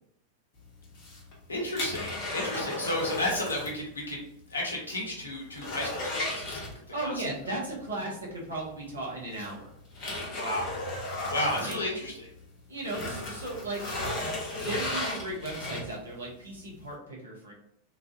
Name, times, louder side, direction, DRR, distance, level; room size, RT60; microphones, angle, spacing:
sound 1, 0.8-3.8 4.1-4.2 4.7-4.8 5.1-7.2 8.6-8.7 9.3-12.4 12.8-16.1 16.6-16.7, left 1 dB, 40° left, 1.0 m, -35 dB
voice 1, 1.5-4.2 4.5-6.7 7.0-7.3 10.4-10.7 11.3-12.3, left 1 dB, 75° left, -1 dB, 0.9 m, -32 dB
voice 2, 6.9-9.7 11.7-11.8 12.7-14.0 14.6-17.5, right 2 dB, 75° right, -3 dB, 1.0 m, -36 dB
3.0 x 2.5 x 2.3 m, 0.74 s
figure-of-eight pair, 90°, 0 cm